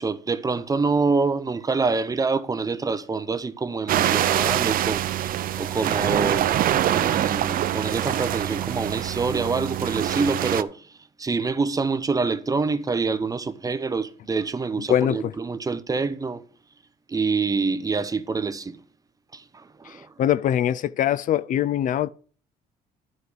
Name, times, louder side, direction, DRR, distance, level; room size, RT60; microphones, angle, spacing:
voice 1, 0.0-6.5 6.9-10.8 11.2-16.4 17.1-18.8 19.3-20.1, right 4 dB, 20° right, 0.8 m, -26 dB
sound 1, 3.9-10.6, right 12 dB, 55° right, 0.6 m, -24 dB
voice 2, 14.9-15.3 19.9-22.1, left 10 dB, 50° left, 0.4 m, -23 dB
11.0 x 5.0 x 6.2 m
cardioid pair, 110°, 17 cm